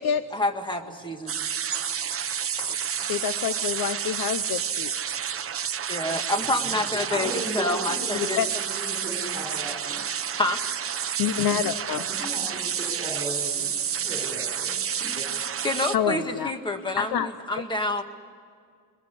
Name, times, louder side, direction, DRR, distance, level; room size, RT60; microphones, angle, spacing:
voice 1, 0.3-1.4 5.9-8.4 10.4-10.6 15.6-18.0, left 2 dB, 15° left, 6 dB, 1.7 m, -28 dB
sound 1, 1.3-16.0, right 8 dB, 40° right, 0.8 m, -30 dB
voice 2, 2.6-4.9 8.1-8.5 11.2-12.0 15.9-16.5 17.0-17.3, left 9 dB, 75° left, 11 dB, 0.8 m, -27 dB
voice 3, 6.4-10.0 11.9-15.3, right 2 dB, 15° right, -1 dB, 4.9 m, -37 dB
23.0 x 21.5 x 9.8 m, 2.2 s
wide cardioid pair, 180°, 36 cm